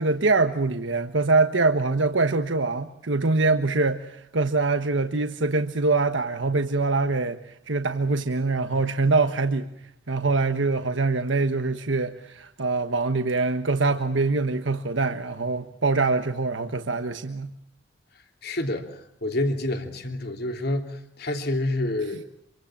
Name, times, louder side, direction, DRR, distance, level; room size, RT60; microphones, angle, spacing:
voice 1, 0.0-7.4 7.7-9.7 10.1-17.5, right 3 dB, 80° right, 8 dB, 1.3 m, -24 dB
voice 2, 18.4-22.2, left 1 dB, 60° left, 5 dB, 3.2 m, -28 dB
27.0 x 25.0 x 7.4 m, 0.72 s
head